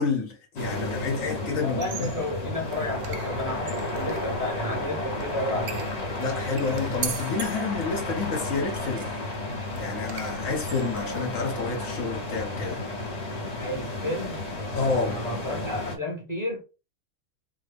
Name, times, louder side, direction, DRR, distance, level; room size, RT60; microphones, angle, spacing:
voice 1, 0.0-2.1 6.1-9.1 9.8-12.8 14.7-15.2, left 4 dB, 70° left, 1.3 m, -29 dB
sound 1, 0.6-16.0, left 2 dB, 35° left, 0.8 m, -32 dB
voice 2, 1.6-5.8 13.6-14.4 14.9-16.6, left 1 dB, 15° right, 1.0 m, -32 dB
sound 2, 1.7-11.5, right 6 dB, 60° right, 0.7 m, -41 dB
3.8 x 2.1 x 3.4 m
omnidirectional pair, 1.4 m